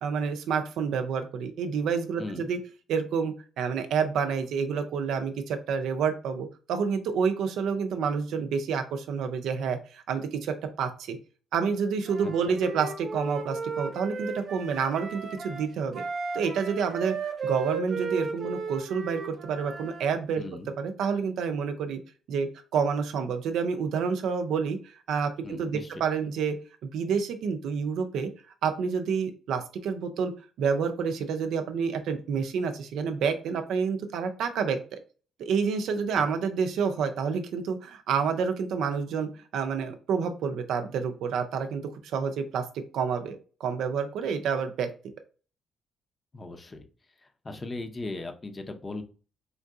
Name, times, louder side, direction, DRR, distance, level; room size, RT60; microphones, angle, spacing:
voice 1, 0.0-2.6 2.9-11.2 11.5-16.0 16.3-17.2 17.4-20.4 20.8-22.0 22.3-28.3 28.6-30.3 30.6-35.0 35.4-42.7 42.9-44.9, right 6 dB, 80° right, 7 dB, 0.5 m, -29 dB
voice 2, 2.2-2.5 12.2-12.6 20.4-20.7 25.4-26.0 46.3-46.8 47.2-49.0, left 2 dB, 30° left, 6 dB, 0.6 m, -38 dB
Wind instrument woodwind instrument, 12.0-20.0, right 4 dB, 50° right, 0.7 m, -35 dB
3.6 x 2.6 x 2.3 m, 0.37 s
cardioid pair, 90°, 0 cm